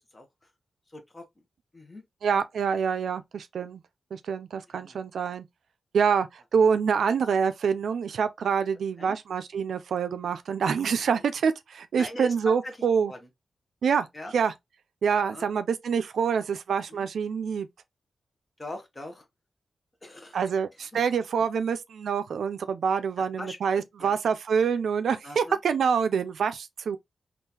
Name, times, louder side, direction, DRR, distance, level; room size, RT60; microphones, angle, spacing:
voice 1, 0.1-0.5 0.9-1.5 1.7-2.0 4.7-5.0 8.6-8.7 9.0-9.2 10.3-10.4 11.9-13.3 14.1-14.4 15.2-15.5 16.9-17.0 18.6-19.3 20.0-20.4 20.7-21.0 21.4-21.5 22.9-24.1 25.2-25.6, left 1 dB, 25° left, 0.8 m, -42 dB
voice 2, 2.2-3.8 4.1-5.5 5.9-13.1 13.8-14.1 14.3-14.5 15.0-17.7 20.3-27.0, right 6 dB, 90° right, 0.3 m, -26 dB
3.7 x 2.3 x 2.8 m
wide cardioid pair, 135°, 0 cm